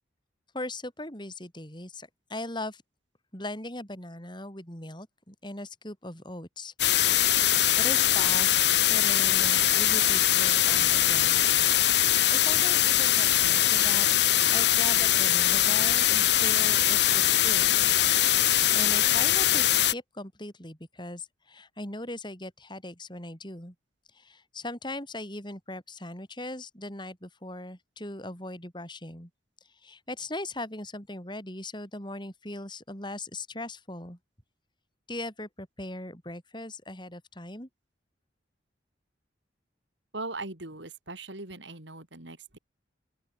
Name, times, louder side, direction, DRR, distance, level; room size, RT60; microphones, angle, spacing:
voice 1, 0.5-2.8 3.3-6.7 7.8-11.4 11.9-14.1 14.5-17.6 18.7-23.7 24.1-29.3 29.8-34.2 35.1-37.7, left 1 dB, 25° left, 7.8 m, -39 dB
sound 1, 6.8-19.9, left 12 dB, 65° left, 4.2 m, -22 dB
voice 2, 40.1-42.6, right 2 dB, 75° right, 4.4 m, -39 dB
open air
head